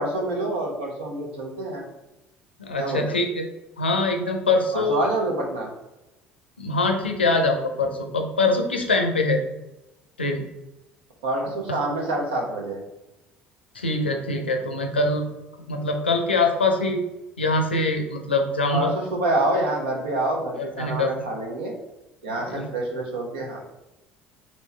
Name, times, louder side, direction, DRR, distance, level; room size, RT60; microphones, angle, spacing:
voice 1, 0.0-1.9 2.8-3.2 4.7-5.7 11.2-12.8 18.7-21.7 22.2-23.6, right 2 dB, 75° right, 0 dB, 0.9 m, -27 dB
voice 2, 2.6-3.5 3.8-5.0 6.6-9.4 10.2-10.5 13.7-15.3 15.7-17.0 17.4-18.9 20.6-21.1 22.5-22.7, left 2 dB, 85° left, 4 dB, 0.5 m, -23 dB
4.3 x 2.9 x 3.2 m, 0.96 s
figure-of-eight pair, 60°, 6 cm